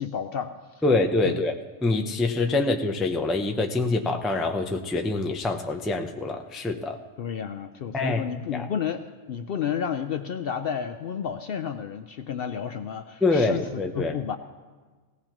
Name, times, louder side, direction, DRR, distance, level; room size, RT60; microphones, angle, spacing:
voice 1, 0.0-0.8 1.2-1.4 7.2-14.4, left 8 dB, 60° left, 8 dB, 0.6 m, -31 dB
voice 2, 0.8-1.6 1.8-7.0 7.9-8.2 8.5-8.7 13.2-14.1, left 3 dB, ahead, 3 dB, 0.3 m, -25 dB
18.5 x 16.0 x 3.0 m, 1.4 s
omnidirectional pair, 1.4 m